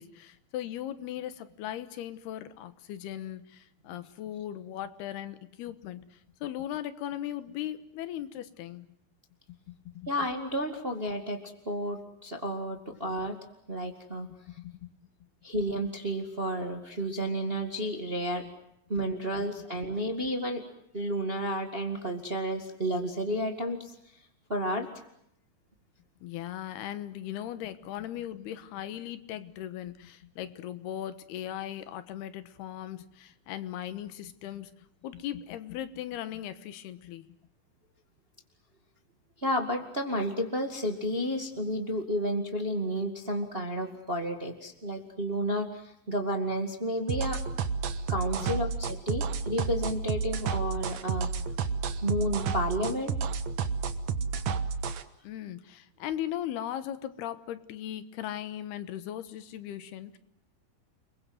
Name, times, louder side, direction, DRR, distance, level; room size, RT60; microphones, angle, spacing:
voice 1, 0.0-8.9 9.7-10.1 14.5-14.9 26.2-34.7 35.0-37.3 55.2-60.2, left 11 dB, 85° left, 12 dB, 3.3 m, -38 dB
voice 2, 10.1-13.4 13.7-14.3 15.4-18.4 18.9-20.6 20.9-23.9 24.5-24.9 39.4-47.4 48.1-51.3 52.0-53.1, equal, 25° right, 5 dB, 1.4 m, -31 dB
sound 1, 47.1-55.0, right 5 dB, 60° right, 2.1 m, -30 dB
30.0 x 22.0 x 7.9 m, 0.75 s
omnidirectional pair, 4.5 m